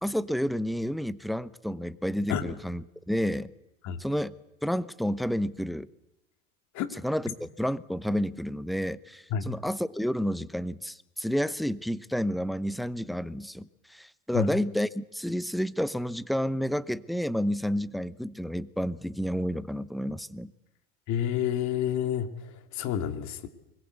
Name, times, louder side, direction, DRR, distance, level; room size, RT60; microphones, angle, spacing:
voice 1, 0.0-3.5 4.0-4.3 4.6-5.9 6.9-20.5, equal, ahead, 17 dB, 0.8 m, -30 dB
voice 2, 21.1-22.3 22.8-23.5, left 9 dB, 50° left, 8 dB, 2.6 m, -28 dB
24.0 x 21.0 x 8.2 m, 0.94 s
hypercardioid pair, 95°, 35 cm